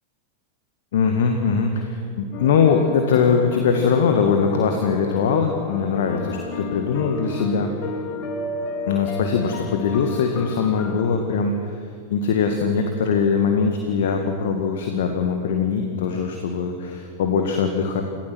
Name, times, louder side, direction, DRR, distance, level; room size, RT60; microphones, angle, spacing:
voice 1, 0.9-7.7 8.9-11.8 12.1-18.0, left 5 dB, 55° left, 4 dB, 1.8 m, -21 dB
sound 1, 2.3-11.0, left 3 dB, 40° left, 2.1 m, -33 dB
27.0 x 17.0 x 6.3 m, 2.2 s
figure-of-eight pair, 90°, 0 cm